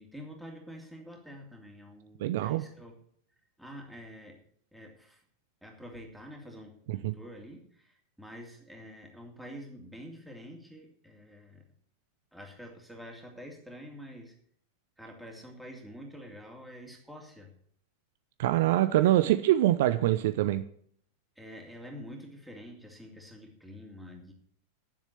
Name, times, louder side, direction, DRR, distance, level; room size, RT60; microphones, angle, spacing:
voice 1, 0.0-3.0 3.6-4.4 4.7-5.2 5.6-11.6 12.3-14.3 15.0-17.5 21.4-24.3, equal, ahead, 0 dB, 2.9 m, -47 dB
voice 2, 2.2-2.6 6.9-7.1 18.4-20.6, right 14 dB, 55° right, 12 dB, 0.6 m, -24 dB
10.0 x 7.3 x 8.3 m, 0.63 s
figure-of-eight pair, 90°, 0 cm